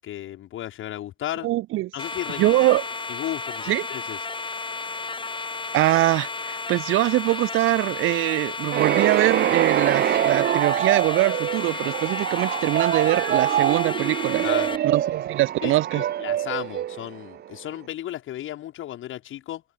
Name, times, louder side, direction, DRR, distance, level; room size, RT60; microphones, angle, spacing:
voice 1, 0.0-1.5 1.9-2.6 3.1-4.2 14.4-14.8 15.6-19.6, left 13 dB, 80° left, 7.9 m, -34 dB
voice 2, 1.4-1.9 2.4-2.8 3.7-3.9 5.7-14.4 14.8-16.0, right 17 dB, 90° right, 1.1 m, -23 dB
sound 1, 2.0-14.8, left 4 dB, 25° left, 2.5 m, -33 dB
sound 2, 8.7-17.5, right 11 dB, 55° right, 0.6 m, -24 dB
cardioid pair, 90°, 20 cm